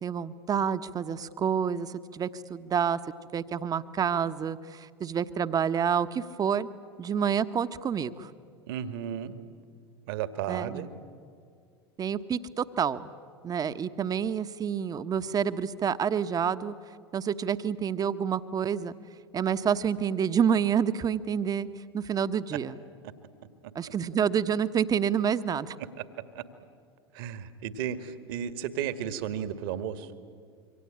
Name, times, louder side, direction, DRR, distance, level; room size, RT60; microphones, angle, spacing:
voice 1, 0.0-3.0 3.3-6.7 7.0-8.3 10.5-10.9 12.0-13.1 13.4-16.7 17.1-18.9 19.3-21.7 21.9-22.8 23.7-25.8, right 7 dB, 30° right, 12 dB, 1.2 m, -28 dB
voice 2, 8.7-9.3 10.1-10.9 26.4-26.5 27.1-30.3, right 9 dB, 60° right, 11 dB, 1.9 m, -34 dB
27.0 x 24.5 x 8.9 m, 2.2 s
figure-of-eight pair, 80°, 14 cm